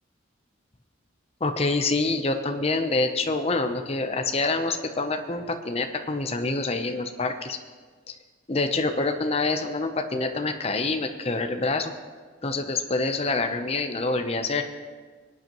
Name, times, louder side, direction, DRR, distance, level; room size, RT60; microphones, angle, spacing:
voice 1, 1.4-7.6 8.5-11.9 12.4-14.6, left 3 dB, 30° left, 6 dB, 0.7 m, -26 dB
23.5 x 9.1 x 3.0 m, 1.5 s
head